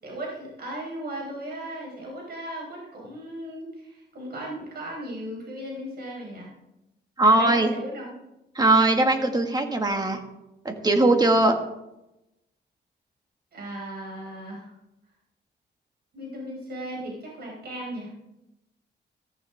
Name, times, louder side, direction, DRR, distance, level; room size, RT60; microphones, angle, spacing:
voice 1, 0.0-6.5 7.2-8.1 13.5-14.7 16.1-18.1, right 1 dB, 60° right, -3 dB, 4.8 m, -36 dB
voice 2, 7.2-7.7 8.6-10.2 10.7-11.6, right 2 dB, 20° right, 4 dB, 1.8 m, -20 dB
15.0 x 14.5 x 3.6 m, 0.91 s
wide cardioid pair, 120°, 19 cm